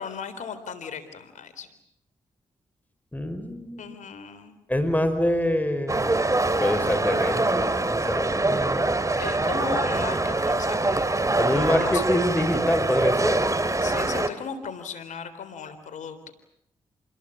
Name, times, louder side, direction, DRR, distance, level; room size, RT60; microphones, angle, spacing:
voice 1, 0.0-1.7 3.8-4.6 9.1-11.1 11.7-12.0 13.8-16.3, left 6 dB, 80° left, 11 dB, 3.7 m, -36 dB
voice 2, 3.1-3.9 4.7-6.2 6.6-9.0 11.4-13.4, left 1 dB, 15° left, 9 dB, 5.1 m, -26 dB
sound 1, 5.9-14.3, right 2 dB, 25° right, 2.3 m, -24 dB
27.5 x 21.5 x 8.5 m, 0.74 s
supercardioid pair, 45°, 13 cm